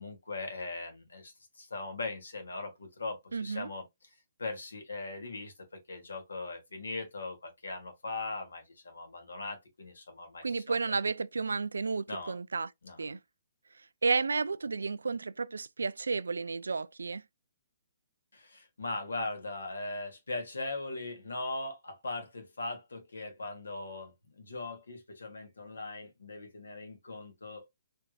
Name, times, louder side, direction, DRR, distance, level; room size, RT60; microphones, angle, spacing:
voice 1, 0.0-3.8 4.4-10.8 12.1-12.4 12.8-13.0 18.3-27.6, left 2 dB, 80° left, 1.6 m, -40 dB
voice 2, 3.3-3.7 10.4-12.7 13.0-13.2 14.0-17.2, right 4 dB, 80° right, 0.3 m, -32 dB
3.4 x 3.4 x 2.3 m
figure-of-eight pair, 135°, 0 cm